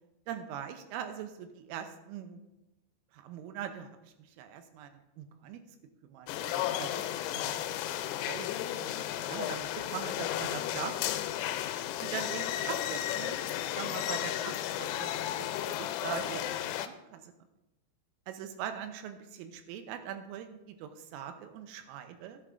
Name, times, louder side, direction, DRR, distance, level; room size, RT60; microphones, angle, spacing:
voice 1, 0.3-2.4 3.1-4.9 5.2-5.6 6.0-7.1 7.3-7.7 8.2-8.5 8.7-11.2 12.0-16.5 16.8-17.3 18.3-22.4, right 9 dB, 85° right, 8 dB, 3.3 m, -42 dB
sound 1, 6.3-16.9, left 12 dB, 85° left, 3.1 m, -34 dB
14.5 x 9.9 x 2.6 m, 0.95 s
omnidirectional pair, 6.0 m